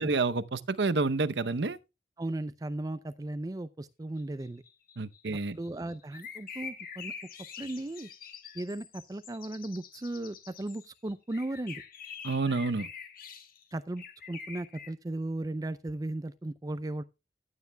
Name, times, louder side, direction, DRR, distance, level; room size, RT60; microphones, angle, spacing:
voice 1, 0.0-1.8 5.0-5.6 12.2-12.9, right 3 dB, 70° right, 0.8 m, -29 dB
voice 2, 2.2-4.6 5.6-7.1 7.6-8.1 8.5-11.8 13.7-17.0, right 1 dB, 20° right, 0.4 m, -36 dB
sound 1, 4.2-14.9, left 6 dB, 55° left, 1.7 m, -46 dB
15.0 x 9.5 x 2.2 m
head